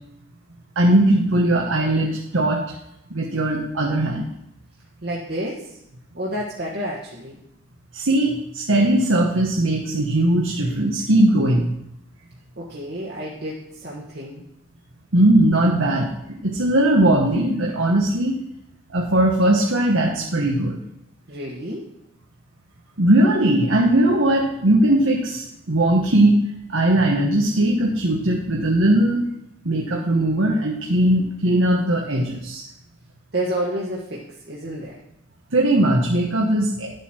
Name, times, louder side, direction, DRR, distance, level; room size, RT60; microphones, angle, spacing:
voice 1, 0.7-2.6 3.1-4.3 7.9-11.6 15.1-18.3 18.9-20.8 23.0-26.4 26.7-29.3 29.6-32.6 35.5-36.9, right 1 dB, 80° right, -1 dB, 1.3 m, -19 dB
voice 2, 5.0-5.8 6.1-7.4 12.6-14.4 21.3-21.9 33.3-35.0, right 1 dB, 55° right, -4 dB, 1.5 m, -30 dB
11.5 x 8.2 x 4.4 m, 0.81 s
head